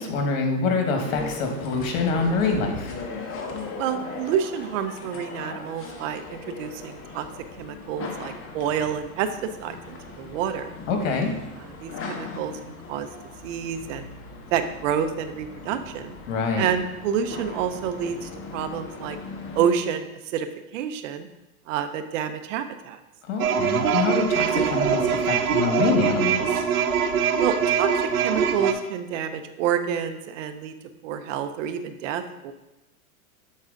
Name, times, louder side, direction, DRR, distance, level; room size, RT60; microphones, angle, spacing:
voice 1, 0.0-2.9 10.9-11.3 16.3-16.7 23.3-26.6, left 4 dB, 65° left, 2 dB, 1.6 m, -25 dB
sound 1, 1.0-19.7, left 4 dB, 30° left, 1.1 m, -39 dB
voice 2, 3.8-7.3 7.6-10.7 11.6-13.1 13.4-14.1 14.5-16.1 16.6-19.2 19.5-20.5 20.7-21.3 21.7-23.0 27.4-27.9 28.2-30.7 31.0-32.5, right 8 dB, 60° right, 9 dB, 0.7 m, -28 dB
sound 2, 23.4-28.7, right 7 dB, 90° right, 0.8 m, -23 dB
7.3 x 3.9 x 3.8 m, 0.97 s
hypercardioid pair, 110°, 43 cm